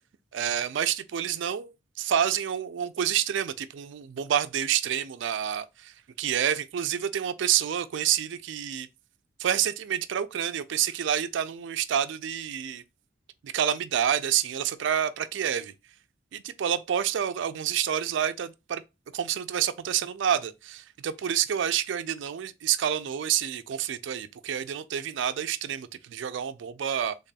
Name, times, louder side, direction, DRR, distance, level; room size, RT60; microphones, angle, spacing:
voice 1, 0.3-5.9 6.2-8.9 9.4-12.8 13.4-15.7 16.3-18.8 19.1-27.2, right 9 dB, 65° right, 0.3 m, -28 dB
3.4 x 2.2 x 3.9 m
head